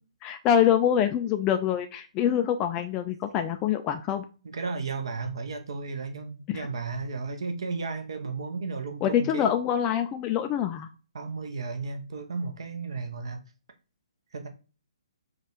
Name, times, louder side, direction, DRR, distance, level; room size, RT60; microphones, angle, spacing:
voice 1, 0.2-4.2 6.5-6.6 9.0-10.9, left 9 dB, 20° left, 0.3 m, -25 dB
voice 2, 4.4-9.5 11.1-13.4 14.3-14.5, right 4 dB, 55° right, 0.8 m, -34 dB
5.2 x 2.4 x 4.3 m
figure-of-eight pair, 130°, 3 cm